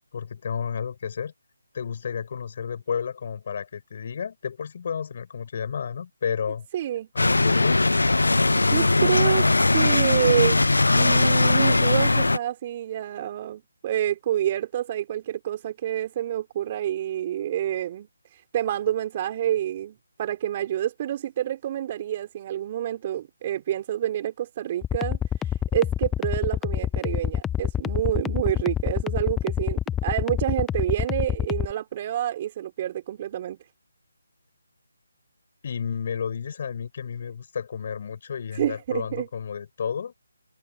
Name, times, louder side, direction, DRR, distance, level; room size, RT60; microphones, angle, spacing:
voice 1, 0.1-1.3 1.7-6.7 7.1-7.8 35.6-40.1, left 7 dB, 45° left, 7.9 m, -31 dB
voice 2, 6.7-7.1 8.6-9.5 9.7-10.7 10.9-33.6 38.5-39.3, right 11 dB, 30° right, 4.4 m, -28 dB
sound 1, 7.2-12.4, left 2 dB, 85° left, 0.7 m, -20 dB
sound 2, 24.8-31.7, left 10 dB, 10° left, 0.9 m, -26 dB
figure-of-eight pair, 160°, 0 cm